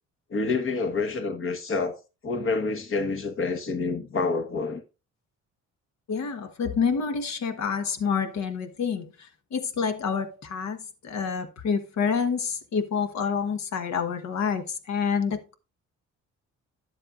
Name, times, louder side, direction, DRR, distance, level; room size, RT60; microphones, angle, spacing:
voice 1, 0.3-4.8, left 4 dB, 45° left, 1.4 m, -28 dB
voice 2, 6.1-9.1 9.5-10.8 11.0-15.5, left 6 dB, 65° left, 1.3 m, -28 dB
11.0 x 7.6 x 2.5 m
cardioid pair, 90°, 30 cm